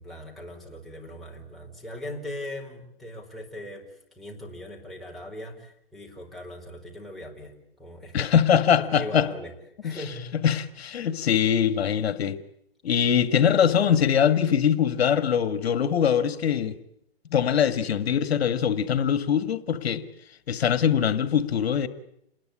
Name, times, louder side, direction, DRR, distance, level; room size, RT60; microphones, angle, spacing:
voice 1, 0.0-9.5 9.8-10.4 11.0-11.1, left 1 dB, ahead, 4.7 m, -40 dB
voice 2, 8.1-9.3 9.8-9.9 10.4-12.4 12.8-16.7 17.3-20.0 20.5-21.9, left 8 dB, 75° left, 1.8 m, -22 dB
28.0 x 20.5 x 8.6 m
hypercardioid pair, 145°, 31 cm